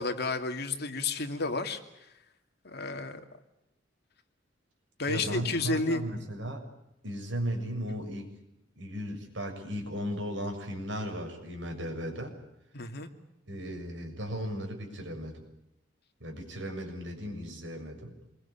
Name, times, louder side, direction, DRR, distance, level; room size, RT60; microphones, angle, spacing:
voice 1, 0.0-1.8 2.6-3.2 5.0-6.0 12.7-13.1, left 3 dB, 60° left, 6 dB, 2.7 m, -31 dB
voice 2, 5.1-6.6 7.0-8.3 8.8-12.3 13.5-15.4 16.2-18.1, equal, 75° right, 3 dB, 7.0 m, -36 dB
27.0 x 22.5 x 8.6 m, 0.86 s
head